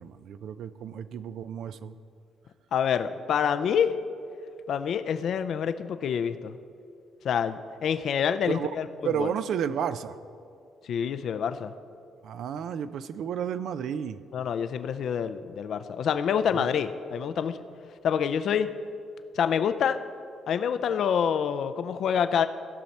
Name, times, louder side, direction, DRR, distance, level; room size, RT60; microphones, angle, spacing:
voice 1, 0.0-1.9 8.5-8.7 9.0-10.2 12.2-14.2 16.5-16.7, right 8 dB, 75° right, 13 dB, 0.4 m, -32 dB
voice 2, 2.7-4.0 4.7-6.6 7.2-8.9 9.2-9.3 10.8-11.7 14.3-17.6 18.0-18.7 19.4-20.0 20.5-22.5, left 7 dB, 65° left, 10 dB, 0.4 m, -27 dB
16.0 x 5.8 x 4.2 m, 2.4 s
cardioid pair, 90°, 0 cm